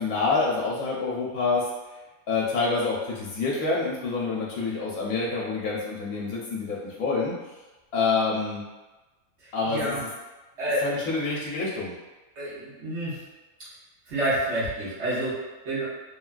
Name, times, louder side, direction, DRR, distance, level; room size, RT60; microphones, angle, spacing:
voice 1, 0.0-1.6 2.3-7.3 7.9-8.6 9.5-9.9 10.8-11.9, left 4 dB, 75° left, -4 dB, 1.1 m, -27 dB
voice 2, 9.4-10.0 10.6-10.9 12.4-13.2 14.1-15.8, right 1 dB, 55° right, -8 dB, 1.2 m, -29 dB
3.3 x 2.2 x 2.4 m, 1.1 s
omnidirectional pair, 1.5 m